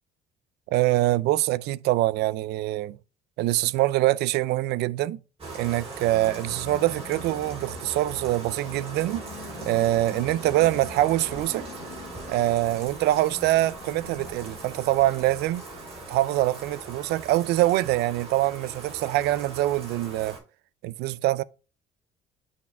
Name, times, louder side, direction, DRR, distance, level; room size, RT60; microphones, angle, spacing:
voice 1, 0.7-3.0 3.4-5.2 5.5-9.2 9.6-11.7 12.3-15.6 16.1-20.4 20.8-21.4, right 16 dB, 80° right, 0.4 m, -24 dB
Bathtub (filling or washing), 5.4-20.4, right 3 dB, 35° right, 4.0 m, -40 dB
sound 1, 6.1-16.2, left 9 dB, 65° left, 0.8 m, -46 dB
8.4 x 4.2 x 3.5 m
cardioid pair, 110°, 17 cm